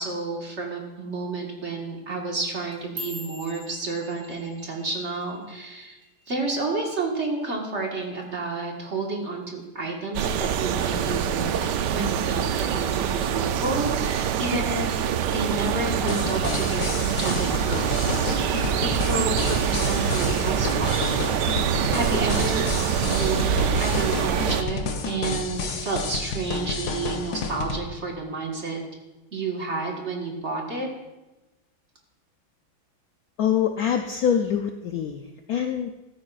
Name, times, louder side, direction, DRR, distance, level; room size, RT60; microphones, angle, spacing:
voice 1, 0.0-6.0 6.3-21.0 21.9-22.8 23.0-23.4 23.8-28.8 29.3-30.9, right 3 dB, 35° right, -1 dB, 1.7 m, -30 dB
sound 1, 2.5-6.9 7.2-7.6 8.0-8.4 8.8-9.0 9.6-10.0 10.4-11.2 11.6-12.0 12.8-12.9, left 1 dB, 90° right, 3.3 m, -43 dB
sound 2, 10.1-24.6, right 8 dB, 70° right, 1.1 m, -25 dB
sound 3, 16.1-27.8, left 4 dB, 60° left, 1.3 m, -31 dB
voice 2, 33.4-35.9, left 8 dB, 85° left, 5 dB, 0.8 m, -25 dB
14.5 x 13.0 x 2.4 m, 1.1 s
omnidirectional pair, 2.2 m